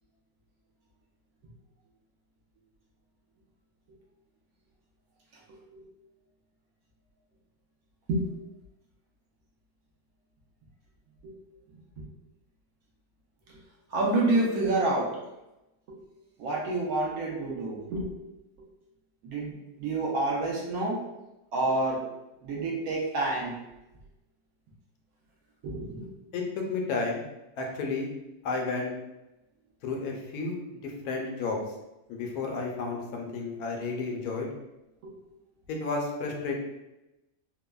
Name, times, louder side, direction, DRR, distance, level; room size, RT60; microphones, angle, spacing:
voice 1, 13.9-15.1 15.9-16.0 16.4-18.1 19.2-21.0 21.5-22.0 22.4-23.6 25.6-26.1 35.0-35.1, right 2 dB, 70° right, -4 dB, 1.1 m, -28 dB
voice 2, 26.3-27.2 27.6-28.1 28.4-28.9 29.8-31.6 32.1-34.5 35.7-36.6, left 3 dB, 75° left, 0 dB, 1.0 m, -32 dB
3.2 x 2.1 x 2.2 m, 0.95 s
omnidirectional pair, 1.7 m